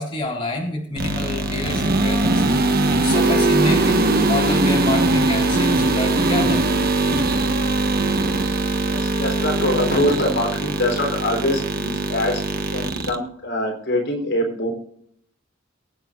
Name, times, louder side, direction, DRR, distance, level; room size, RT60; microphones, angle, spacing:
voice 1, 0.0-6.6, left 2 dB, 25° left, -3 dB, 3.9 m, -28 dB
sound 1, 1.0-13.2, right 2 dB, 50° right, 1.4 m, -20 dB
voice 2, 8.8-12.4 12.7-14.7, left 1 dB, 60° left, 1 dB, 3.9 m, -23 dB
23.5 x 9.2 x 2.5 m, 0.66 s
head